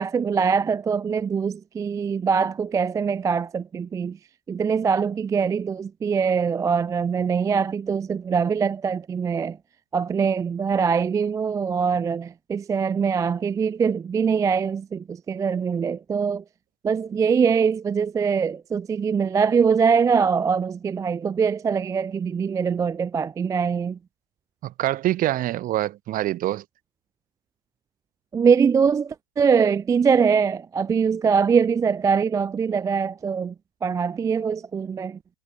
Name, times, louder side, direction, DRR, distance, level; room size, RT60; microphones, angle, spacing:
voice 1, 0.0-4.2 4.5-9.6 9.9-16.4 16.8-24.0 28.3-33.5 33.8-35.2, right 6 dB, 10° right, 0.4 m, -23 dB
voice 2, 24.6-26.6, right 14 dB, 25° right, 0.8 m, -25 dB
figure-of-eight pair, 95°, 32 cm